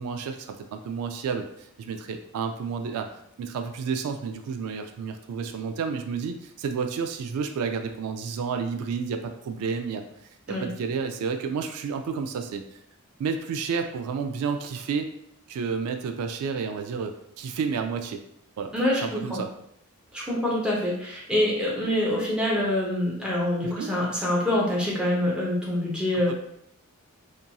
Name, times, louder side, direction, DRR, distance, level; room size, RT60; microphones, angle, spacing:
voice 1, 0.0-1.5 1.8-3.1 3.4-10.0 10.6-12.6 13.2-15.1 15.5-18.2 18.6-19.5 23.6-23.9 26.3-26.4, right 5 dB, 85° right, 10 dB, 0.3 m, -30 dB
voice 2, 18.7-19.4 20.1-26.3, left 1 dB, 5° right, -5 dB, 0.6 m, -25 dB
2.8 x 2.6 x 2.2 m, 0.73 s
head